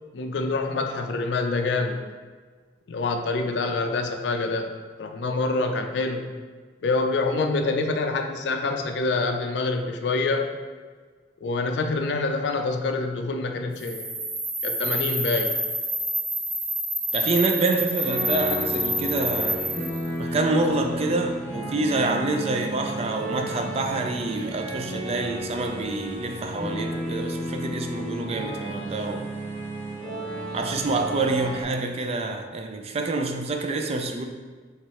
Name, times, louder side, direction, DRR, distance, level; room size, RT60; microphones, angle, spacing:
voice 1, 0.1-2.0 2.9-4.7 5.0-6.3 6.8-10.5 11.4-14.2 14.6-15.6, left 3 dB, 70° left, 5 dB, 0.4 m, -26 dB
sound 1, 13.8-20.1, right 1 dB, 55° right, 1.0 m, -28 dB
voice 2, 17.1-19.6 20.2-29.3 30.5-34.2, right 3 dB, 35° right, 5 dB, 0.4 m, -27 dB
sound 2, 17.9-31.6, equal, 10° left, 0.8 m, -33 dB
4.5 x 3.2 x 3.0 m, 1.5 s
head